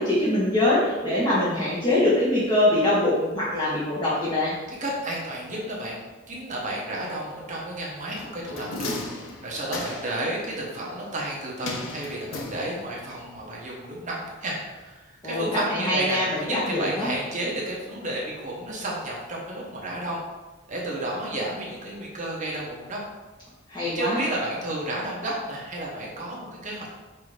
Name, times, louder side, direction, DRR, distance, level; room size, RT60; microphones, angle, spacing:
voice 1, 0.0-4.5 15.2-17.1 23.7-24.3, left 1 dB, 25° left, -9 dB, 1.0 m, -23 dB
voice 2, 4.7-8.9 9.4-20.2 20.7-23.0 23.8-26.9, right 1 dB, 40° right, -3 dB, 1.0 m, -32 dB
sound 1, 8.2-10.3 11.6-13.1 13.4-13.5, left 2 dB, 85° left, 0.6 m, -35 dB
5.6 x 2.7 x 3.2 m, 1.2 s
head